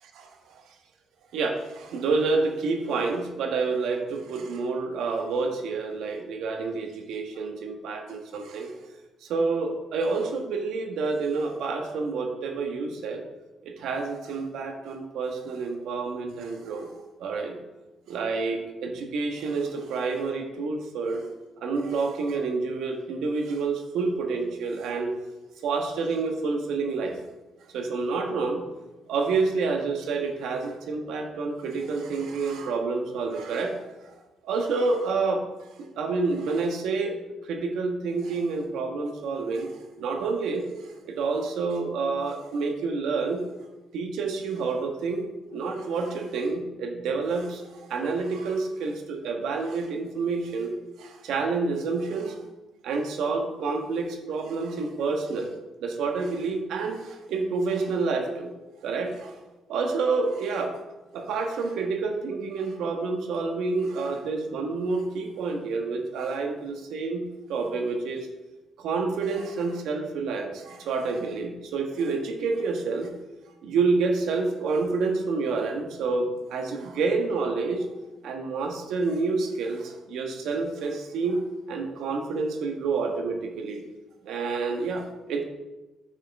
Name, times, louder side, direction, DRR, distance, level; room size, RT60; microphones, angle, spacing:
voice 1, 0.2-0.6 1.3-8.7 9.2-13.2 13.6-16.9 17.2-17.6 18.1-21.3 21.6-25.1 25.6-27.2 27.7-28.6 29.1-33.8 34.4-35.4 35.8-37.2 37.4-43.4 43.9-50.7 51.0-52.4 52.8-55.5 55.8-58.5 58.8-59.3 59.7-60.7 61.1-68.3 68.8-73.1 73.6-77.9 78.2-81.4 81.7-83.8 84.2-85.4, right 4 dB, 80° right, 4 dB, 1.3 m, -28 dB
9.1 x 6.6 x 3.5 m, 1.1 s
cardioid pair, 90°, 0 cm